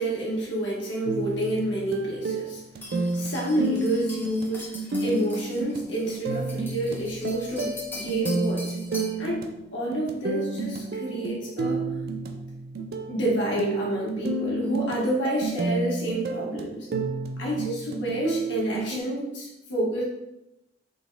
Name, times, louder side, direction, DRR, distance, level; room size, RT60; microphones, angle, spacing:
voice 1, 0.0-8.7 9.2-9.5 9.7-11.8 13.1-16.9 17.4-20.0, right 1 dB, 80° left, -4 dB, 1.5 m, -29 dB
sound 1, 1.1-19.0, right 2 dB, 60° right, 0.4 m, -31 dB
sound 2, 2.8-9.2, left 1 dB, 10° left, 1.0 m, -42 dB
3.9 x 3.0 x 3.4 m, 0.89 s
head